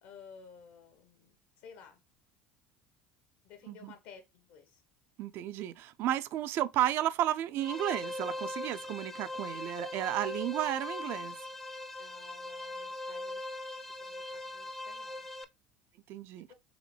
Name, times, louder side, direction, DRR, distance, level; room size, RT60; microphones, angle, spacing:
voice 1, 0.0-2.0 3.4-4.8 12.0-13.6 14.0-15.3 16.5-16.6, left 6 dB, 70° left, 1.2 m, -55 dB
voice 2, 5.2-11.4 16.1-16.5, right 12 dB, 60° right, 0.4 m, -33 dB
sound 1, 7.6-15.4, left 2 dB, 10° left, 0.5 m, -40 dB
3.8 x 3.1 x 3.2 m
hypercardioid pair, 85°, 5 cm